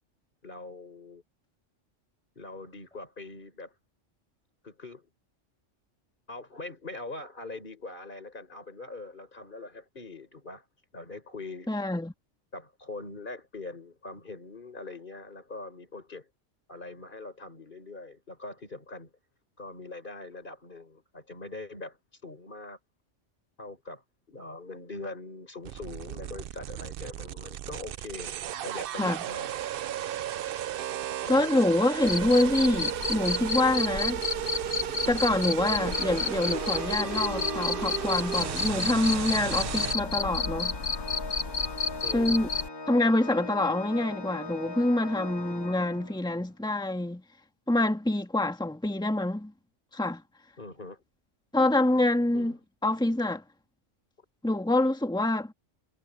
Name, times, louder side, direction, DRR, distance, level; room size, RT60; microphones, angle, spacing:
voice 1, 0.4-1.2 2.4-3.7 4.6-5.1 6.3-10.6 10.9-12.0 12.5-16.3 16.7-19.1 19.6-22.0 22.2-22.8 23.6-24.0 24.3-28.3 28.6-30.1 30.4-30.6 31.2-31.5 42.0-42.4 50.6-51.0 52.3-52.5, left 3 dB, 40° left, 4.7 m, -42 dB
voice 2, 11.7-12.1 29.0-29.2 31.3-34.2 35.1-40.8 42.1-42.5 42.9-47.2 47.7-49.5 49.9-50.2 51.5-52.5 52.8-53.4 54.4-55.5, left 1 dB, 5° left, 1.8 m, -26 dB
sound 1, 25.6-39.9, right 11 dB, 60° right, 0.6 m, -34 dB
Cricket, 32.0-42.7, left 4 dB, 75° left, 2.1 m, -31 dB
Organ, 35.6-46.4, left 2 dB, 20° left, 2.5 m, -40 dB
omnidirectional pair, 1.3 m